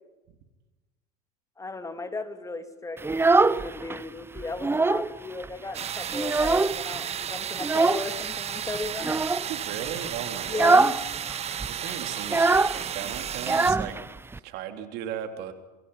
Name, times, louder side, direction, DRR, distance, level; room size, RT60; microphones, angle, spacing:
voice 1, 1.6-9.1 10.5-11.0, left 3 dB, 15° left, 8 dB, 2.8 m, -35 dB
Child speech kid speaking, 3.0-4.0 4.4-5.1 5.4-5.5 5.9-7.0 7.6-8.1 9.0-9.5 9.9-10.1 10.5-11.0 11.3-11.4 11.6-14.4, right 3 dB, 10° right, 0.9 m, -23 dB
sound 1, 5.7-13.7, right 9 dB, 30° right, 1.1 m, -33 dB
voice 2, 9.5-10.8 11.6-14.0 14.4-15.5, right 9 dB, 55° right, 6 dB, 3.4 m, -36 dB
27.5 x 24.5 x 5.7 m, 1.1 s
hypercardioid pair, 85°, 20 cm